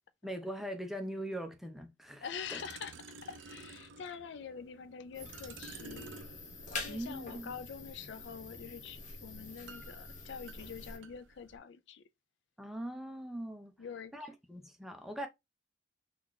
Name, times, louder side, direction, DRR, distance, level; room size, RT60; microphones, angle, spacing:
voice 1, 0.2-2.3 2.5-2.6 6.9-7.5 12.6-13.8 14.1-15.3, right 1 dB, ahead, 0.5 m, -41 dB
voice 2, 2.2-6.1 6.8-12.0 13.8-14.3, left 6 dB, 65° left, 0.4 m, -45 dB
sound 1, 2.2-11.6, right 4 dB, 75° right, 0.5 m, -53 dB
sound 2, 5.1-11.0, left 3 dB, 40° left, 0.9 m, -46 dB
3.7 x 2.4 x 3.4 m
head